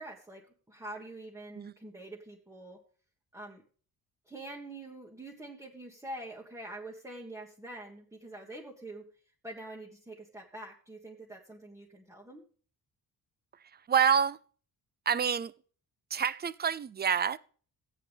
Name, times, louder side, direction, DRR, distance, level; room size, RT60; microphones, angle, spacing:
voice 1, 0.0-2.8 3.3-3.6 4.3-9.1 9.4-12.4, right 1 dB, 10° right, 1.5 m, -45 dB
voice 2, 13.9-14.4 15.1-15.5 16.1-17.4, right 7 dB, 30° right, 0.4 m, -27 dB
15.0 x 9.2 x 3.5 m
cardioid pair, 115°, 37 cm